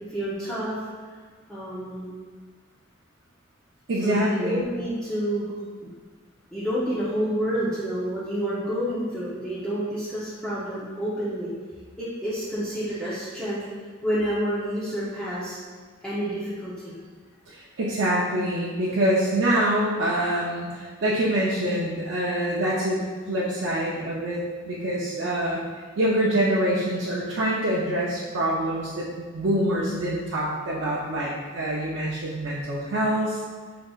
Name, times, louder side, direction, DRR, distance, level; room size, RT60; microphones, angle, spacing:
voice 1, 0.1-0.8 1.5-2.2 4.0-5.5 5.8-5.9 6.5-11.5 12.0-13.6 14.0-15.6 16.0-17.0, equal, 5° left, -11 dB, 0.7 m, -29 dB
voice 2, 3.9-4.6 17.5-23.0 23.3-25.6 26.0-33.4, right 1 dB, 70° right, -6 dB, 0.6 m, -25 dB
5.4 x 3.8 x 2.4 m, 1.6 s
head